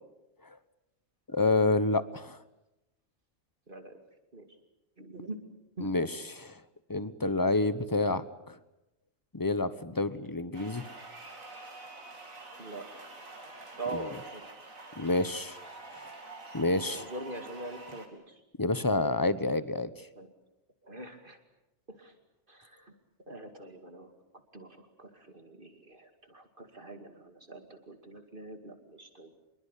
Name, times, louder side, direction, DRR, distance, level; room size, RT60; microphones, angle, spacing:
voice 1, 1.3-2.4 5.8-6.6 6.9-8.6 9.3-10.8 13.9-14.1 15.0-15.6 16.0-16.1 16.5-17.1 18.6-19.9, left 2 dB, 15° left, 14 dB, 0.9 m, -28 dB
voice 2, 3.7-4.0 4.3-4.5 5.0-5.4 5.8-5.9 12.6-13.0 13.8-14.4 14.9-15.1 16.9-18.4 20.2-20.3 20.8-21.4 21.9-22.1 22.5-22.9 23.3-24.1 24.5-29.3, right 2 dB, 40° right, 6 dB, 2.6 m, -43 dB
sound 1, 10.5-18.1, right 2 dB, 75° right, 3.4 m, -47 dB
26.0 x 22.5 x 8.3 m, 0.93 s
omnidirectional pair, 1.4 m